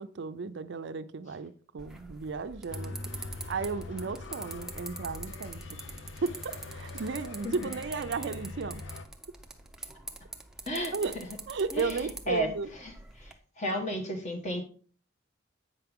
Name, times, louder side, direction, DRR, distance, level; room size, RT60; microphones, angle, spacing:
voice 1, 0.0-5.6 6.2-8.8 10.9-11.2 11.5-12.7, right 4 dB, 60° right, 0.5 m, -34 dB
sound 1, 1.8-13.3, right 2 dB, ahead, 0.6 m, -45 dB
sound 2, 2.7-9.1, left 2 dB, 65° left, 0.7 m, -43 dB
voice 2, 11.7-12.5 13.2-13.3 13.6-14.6, equal, 35° left, 1.4 m, -32 dB
8.2 x 5.8 x 3.5 m
head